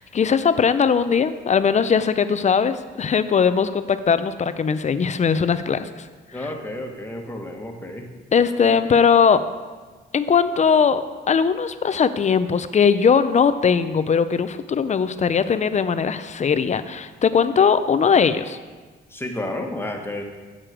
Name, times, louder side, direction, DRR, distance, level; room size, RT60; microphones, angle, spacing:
voice 1, 0.0-5.9 8.3-9.4 10.1-18.6, left 6 dB, 35° left, 12 dB, 0.6 m, -19 dB
voice 2, 6.3-8.1 19.1-20.2, left 1 dB, 10° left, 2 dB, 1.4 m, -31 dB
9.1 x 7.5 x 5.1 m, 1.4 s
cardioid pair, 90°, 20 cm